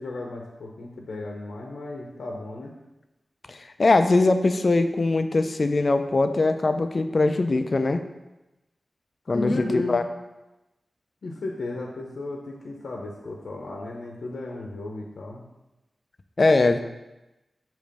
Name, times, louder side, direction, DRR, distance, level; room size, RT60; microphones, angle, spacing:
voice 1, 0.0-2.7 9.3-10.0 11.2-15.5, left 2 dB, 90° left, 0 dB, 0.7 m, -34 dB
voice 2, 3.5-8.0 9.3-10.0 16.4-16.8, left 3 dB, 50° left, 8 dB, 0.4 m, -21 dB
6.5 x 3.0 x 5.2 m, 0.99 s
wide cardioid pair, 95°, 0 cm